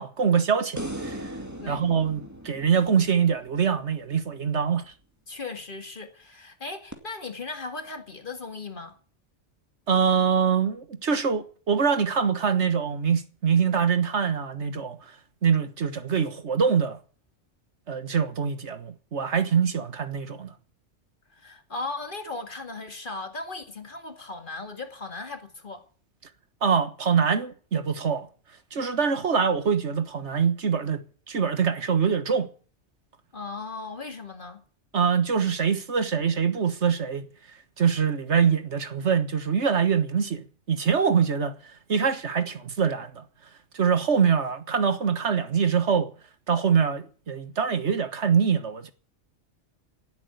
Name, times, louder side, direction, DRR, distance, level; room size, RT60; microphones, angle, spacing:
voice 1, 0.0-1.3 1.7-4.9 9.9-15.0 15.4-17.0 17.9-20.5 26.6-28.3 28.7-32.5 34.9-37.2 37.8-41.6 41.9-43.2 43.7-46.1 46.5-48.9, right 6 dB, 65° right, 1.7 m, -24 dB
sound 1, 0.8-4.1 6.9-7.0, right 1 dB, 15° right, 2.4 m, -38 dB
voice 2, 5.3-9.0 21.3-25.8 33.3-34.6, left 3 dB, 45° left, 2.2 m, -37 dB
17.5 x 8.3 x 9.5 m
omnidirectional pair, 1.3 m